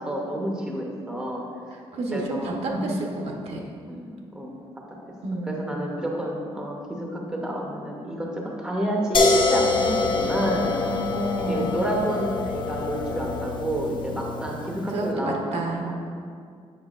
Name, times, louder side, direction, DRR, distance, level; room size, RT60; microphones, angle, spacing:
voice 1, 0.0-1.4 2.1-2.5 3.9-4.6 5.5-10.8 11.4-15.9, right 1 dB, 5° right, -1 dB, 0.8 m, -29 dB
voice 2, 1.7-3.7 5.2-5.6 10.4-11.9 14.9-16.0, right 1 dB, 70° right, 0 dB, 0.9 m, -30 dB
sound 1, 9.1-15.0, left 4 dB, 45° left, 0.6 m, -26 dB
8.0 x 5.6 x 2.4 m, 2.2 s
cardioid pair, 145°, 11 cm